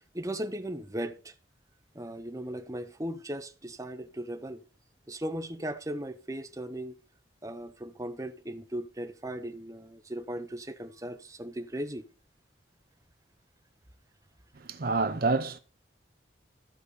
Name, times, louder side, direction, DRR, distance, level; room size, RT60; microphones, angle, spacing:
voice 1, 0.1-1.3 1.9-4.6 5.1-6.9 7.4-12.0, right 1 dB, 15° right, 0.9 m, -37 dB
voice 2, 14.6-15.6, right 3 dB, 50° right, 0.7 m, -28 dB
14.0 x 4.8 x 6.9 m
head